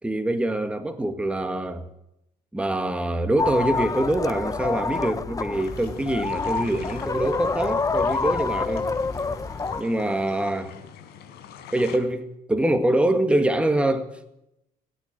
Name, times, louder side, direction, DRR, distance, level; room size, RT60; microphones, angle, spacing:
voice 1, 0.0-1.9 2.5-8.9 9.8-10.7 11.7-14.2, right 1 dB, 5° right, 1.9 m, -24 dB
sound 1, 3.4-9.8, left 4 dB, 20° left, 0.8 m, -27 dB
sound 2, 5.6-12.0, left 8 dB, 80° left, 4.3 m, -43 dB
27.0 x 10.0 x 9.6 m
cardioid pair, 110°, 17 cm